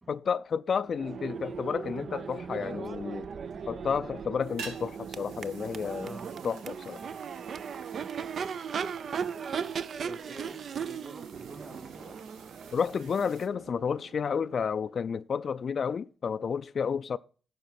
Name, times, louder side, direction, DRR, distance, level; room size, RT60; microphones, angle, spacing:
voice 1, 0.1-3.3 3.7-6.2 6.4-7.0 12.7-17.2, left 6 dB, 55° left, 0.3 m, -31 dB
Crowd / Race car auto racing / Accelerating revving vroom, 0.8-14.7, right 6 dB, 60° right, 0.4 m, -38 dB
voice 2, 2.5-3.1 6.0-6.4 10.0-12.2, right 3 dB, 30° right, 2.4 m, -47 dB
sound 1, 4.4-13.5, right 5 dB, 90° right, 1.2 m, -50 dB
10.5 x 4.6 x 5.8 m
supercardioid pair, 60°, 0 cm